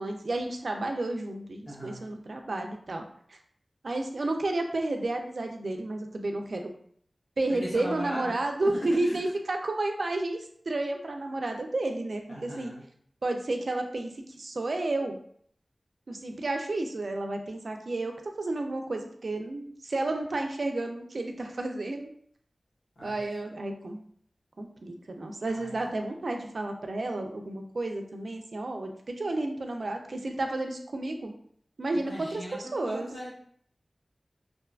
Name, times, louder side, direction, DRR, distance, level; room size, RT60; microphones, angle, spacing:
voice 1, 0.0-3.0 3.8-6.7 7.4-12.7 13.2-14.1 14.4-15.2 16.1-22.1 23.0-24.0 24.6-31.3 31.8-32.4 32.7-33.1, right 2 dB, 75° right, 3 dB, 0.3 m, -31 dB
voice 2, 1.6-2.0 7.5-8.3 8.9-9.2 12.3-12.8 23.0-23.2 25.5-25.8 31.9-33.3, equal, 85° left, -4 dB, 0.8 m, -39 dB
2.7 x 2.2 x 2.3 m, 0.63 s
wide cardioid pair, 65°, 0 cm